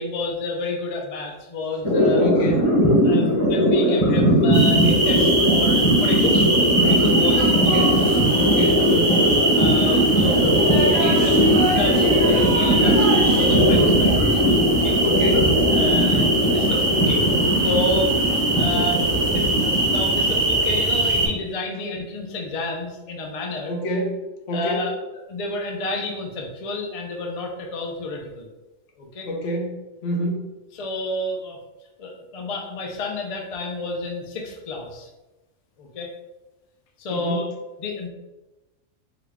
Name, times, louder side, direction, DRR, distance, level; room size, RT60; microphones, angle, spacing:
voice 1, 0.0-2.2 3.0-7.7 9.5-14.2 14.7-15.0 15.7-17.2 17.6-23.7 24.5-24.9 25.3-28.5 29.0-29.3 30.7-31.6 32.0-35.1 35.8-36.1 37.0-37.5 37.8-38.1, left 2 dB, 55° left, 0 dB, 0.4 m, -30 dB
sound 1, 1.8-21.3, equal, 30° left, 0.7 m, -20 dB
voice 2, 2.2-2.7 7.5-8.0 8.4-9.3 15.0-16.2 23.7-24.9 29.2-30.5 37.1-37.5, equal, 70° left, 1 dB, 1.0 m, -27 dB
sound 2, 4.5-21.3, right 2 dB, 25° right, 0.7 m, -22 dB
sound 3, 6.8-14.4, right 2 dB, 80° right, 1.2 m, -30 dB
3.8 x 2.3 x 3.4 m, 1.0 s
omnidirectional pair, 1.3 m